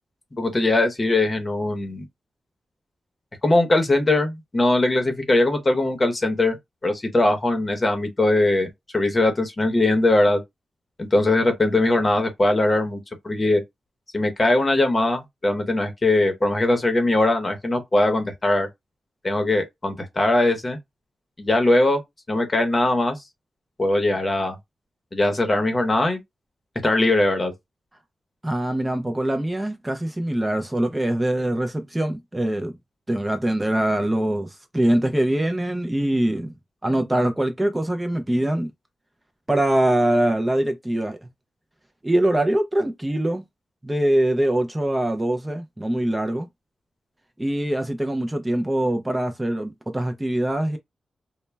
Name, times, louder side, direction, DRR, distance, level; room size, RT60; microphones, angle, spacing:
voice 1, 0.4-2.0 3.4-6.6 6.8-10.4 11.0-13.6 14.1-18.7 19.2-20.8 21.4-22.0 22.3-23.2 23.8-24.6 25.1-26.2 26.8-27.5, left 2 dB, 30° left, 0.8 m, -21 dB
voice 2, 28.4-32.8 33.1-36.5 36.8-38.7 39.5-41.3 42.0-43.4 43.8-46.5 47.4-50.8, right 1 dB, 15° right, 0.4 m, -23 dB
2.1 x 2.1 x 3.2 m
cardioid pair, 80°, 0 cm